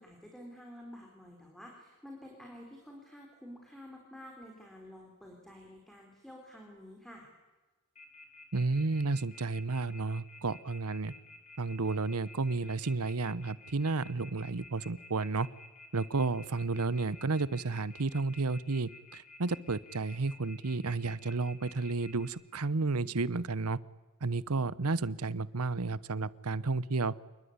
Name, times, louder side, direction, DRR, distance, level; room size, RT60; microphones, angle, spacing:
voice 1, 0.0-7.3, equal, ahead, 0 dB, 4.4 m, -50 dB
Telephone, 8.0-22.3, left 3 dB, 30° left, 5.1 m, -52 dB
voice 2, 8.5-11.1 11.6-15.5 15.9-23.8 24.2-27.1, right 3 dB, 85° right, 18 dB, 1.0 m, -32 dB
28.0 x 20.5 x 9.7 m, 1.2 s
head